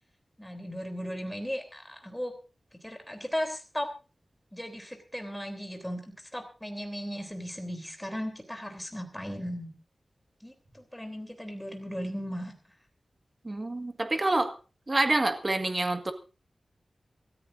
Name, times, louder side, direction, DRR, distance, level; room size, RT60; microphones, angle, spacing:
voice 1, 0.4-2.3 2.8-3.9 4.5-6.0 6.3-9.7 10.4-12.5, equal, 5° left, 4 dB, 3.4 m, -36 dB
voice 2, 13.4-14.6 14.9-16.1, right 2 dB, 30° right, 5 dB, 1.8 m, -27 dB
27.0 x 13.5 x 2.6 m, 0.33 s
wide cardioid pair, 110°, 0 cm